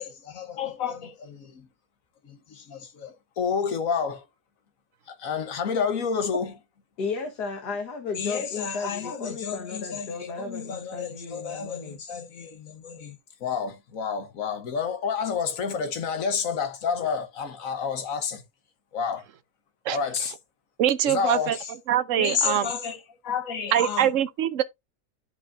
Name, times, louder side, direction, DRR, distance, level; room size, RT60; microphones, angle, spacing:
voice 1, 0.0-1.1 1.4-1.7 2.2-2.3 2.7-4.2 5.1-6.6 8.1-13.2 13.4-18.4 18.9-19.2 19.9-20.3 21.0-21.7 22.2-24.1, left 6 dB, 60° left, 1.4 m, -30 dB
voice 2, 7.0-12.0, left 4 dB, 90° left, 2.0 m, -34 dB
voice 3, 20.8-22.7 23.7-24.6, right 10 dB, 60° right, 1.0 m, -24 dB
11.5 x 5.2 x 2.6 m
omnidirectional pair, 1.7 m